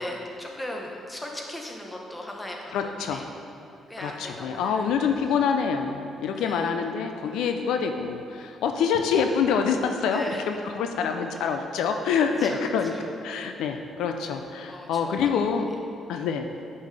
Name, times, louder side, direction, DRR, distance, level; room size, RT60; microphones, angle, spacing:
voice 1, 0.0-3.3 3.9-4.9 6.3-6.6 10.1-10.4 11.4-11.6 12.2-13.0 14.7-15.4, left 1 dB, 15° left, 0 dB, 1.1 m, -37 dB
voice 2, 2.7-3.2 4.0-12.9 13.2-15.7 16.1-16.5, left 6 dB, 85° left, 5 dB, 0.5 m, -26 dB
9.3 x 5.5 x 3.4 m, 2.6 s
cardioid pair, 90°, 0 cm